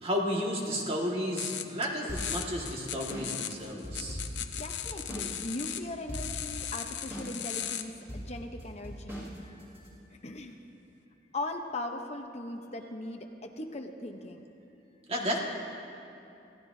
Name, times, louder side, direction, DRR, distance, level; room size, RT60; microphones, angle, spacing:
voice 1, 0.0-4.2 15.1-15.4, equal, 35° right, -1 dB, 1.8 m, -32 dB
sound 1, 1.4-1.9 2.1-5.8 6.1-7.8, left 11 dB, 80° left, 0.7 m, -37 dB
sound 2, 2.1-5.3 5.6-5.7 6.1-6.6 7.1-7.6 8.1-9.9, equal, 15° right, 3.4 m, -40 dB
voice 2, 4.6-9.2 10.1-10.6 11.3-14.5, left 2 dB, 40° left, 4 dB, 0.8 m, -39 dB
26.0 x 15.5 x 2.7 m, 2.8 s
head